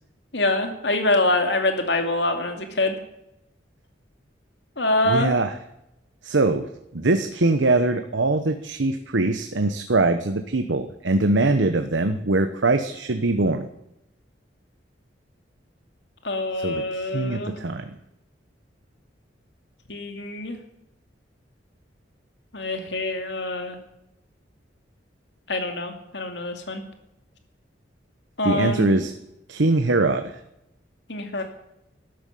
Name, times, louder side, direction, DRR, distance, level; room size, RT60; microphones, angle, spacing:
voice 1, 0.3-3.0 4.8-5.4 16.2-17.6 19.9-20.6 22.5-23.8 25.5-26.8 28.4-28.9 31.1-31.4, left 2 dB, 70° left, 5 dB, 2.6 m, -25 dB
voice 2, 5.0-5.5 6.2-13.7 16.6-17.9 28.4-29.1 29.5-30.4, right 2 dB, 85° right, 8 dB, 1.0 m, -22 dB
13.0 x 11.5 x 8.5 m, 0.85 s
head